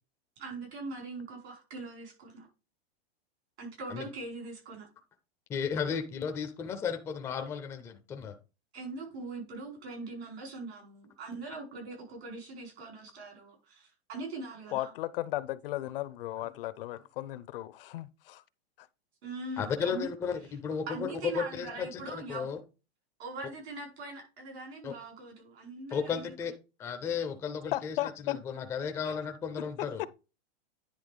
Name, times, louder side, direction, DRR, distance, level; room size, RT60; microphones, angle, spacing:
voice 1, 0.4-2.5 3.6-4.9 8.7-14.9 19.2-20.1 20.9-22.5 23.2-26.3, right 3 dB, 85° right, 4.9 m, -42 dB
voice 2, 5.5-8.3 19.6-21.1 21.3-22.6 24.8-24.9 25.9-26.5 26.8-28.0 28.4-30.0, left 6 dB, 10° left, 0.4 m, -34 dB
voice 3, 14.7-18.4 18.8-18.9 27.7-28.4 29.0-29.1 30.0-30.1, left 15 dB, 60° left, 0.6 m, -35 dB
9.9 x 3.3 x 5.2 m
supercardioid pair, 160°, 31 cm